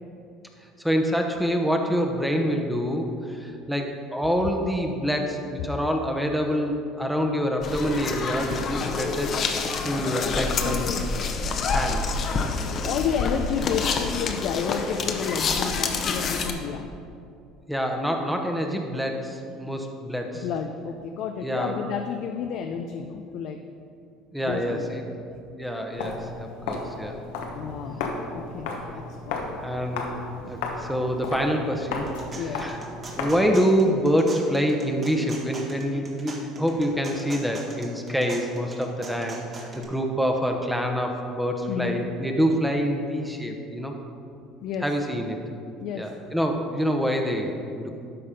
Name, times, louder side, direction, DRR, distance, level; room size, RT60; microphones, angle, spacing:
voice 1, 0.8-9.3 9.8-10.9 11.7-12.3 17.7-20.4 21.4-21.8 24.3-25.0 25.5-27.2 28.7-29.0 29.6-30.1 30.5-32.1 32.3-32.8 33.1-43.9 44.8-45.4 46.0-47.9, equal, ahead, 2 dB, 1.0 m, -26 dB
sound 1, 7.6-16.5, left 4 dB, 45° left, 0.9 m, -27 dB
voice 2, 10.6-11.1 12.8-16.9 20.4-23.6 24.4-25.1 27.5-28.0 28.3-29.6 32.4-32.6 41.7-42.0 44.6-44.9 45.8-46.1, left 7 dB, 65° left, 5 dB, 0.5 m, -31 dB
Walk footsteps, 25.9-33.6, left 3 dB, 85° left, 1.0 m, -34 dB
sound 2, 31.8-39.8, right 2 dB, 35° right, 1.7 m, -42 dB
12.0 x 4.2 x 5.2 m, 2.5 s
supercardioid pair, 90°, 0 cm